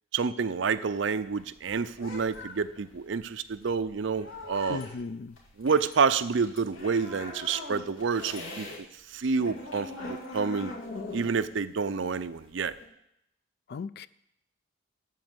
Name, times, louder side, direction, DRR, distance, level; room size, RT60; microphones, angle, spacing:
voice 1, 0.1-4.8 5.6-8.7 9.1-10.7 11.1-12.7, right 5 dB, 65° right, 13 dB, 0.5 m, -28 dB
sound 1, 0.7-8.8 9.1-12.9, left 2 dB, 90° left, 2.3 m, -42 dB
voice 2, 4.7-5.4 13.7-14.1, left 4 dB, 55° left, 16 dB, 0.4 m, -36 dB
12.5 x 4.4 x 7.9 m, 0.80 s
head